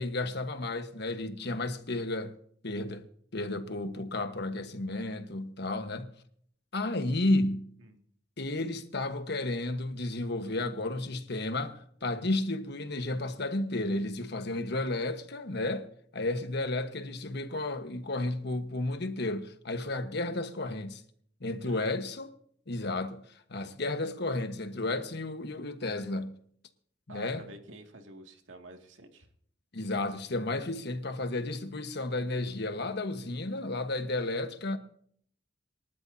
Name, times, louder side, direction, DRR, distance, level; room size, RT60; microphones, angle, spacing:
voice 1, 0.0-2.3 2.6-3.1 3.3-6.1 6.7-7.7 8.4-21.0 21.4-22.3 22.7-26.4 27.1-27.4 29.7-34.8, left 2 dB, 60° left, 1.3 m, -32 dB
voice 2, 27.1-29.3, right 1 dB, 90° right, 2.3 m, -48 dB
28.0 x 12.5 x 2.8 m
head